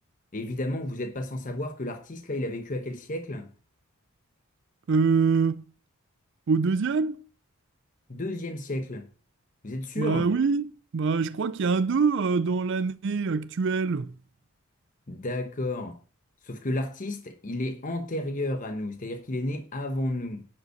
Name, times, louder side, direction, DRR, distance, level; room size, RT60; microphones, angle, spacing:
voice 1, 0.3-3.5 8.1-9.1 9.6-10.3 15.1-16.0 16.4-20.5, left 1 dB, 40° left, 1.0 m, -32 dB
voice 2, 4.9-5.6 6.5-7.2 10.0-14.1, right 5 dB, 60° right, 0.4 m, -24 dB
11.0 x 5.4 x 6.5 m
head